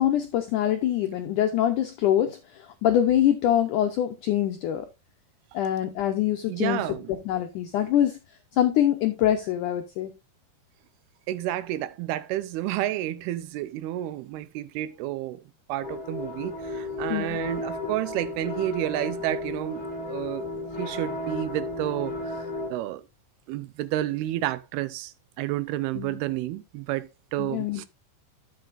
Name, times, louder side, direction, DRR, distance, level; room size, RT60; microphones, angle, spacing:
voice 1, 0.0-4.9 5.5-6.8 7.1-8.2 8.5-10.1 17.1-17.4 26.0-26.2 27.4-27.9, left 11 dB, 80° left, 1.8 m, -24 dB
voice 2, 6.5-7.1 11.3-15.4 15.7-20.5 20.8-22.4 22.7-23.0 23.5-27.9, right 14 dB, 80° right, 2.7 m, -30 dB
sound 1, 15.8-22.7, left 2 dB, 25° left, 2.3 m, -34 dB
12.0 x 7.7 x 2.6 m
omnidirectional pair, 4.7 m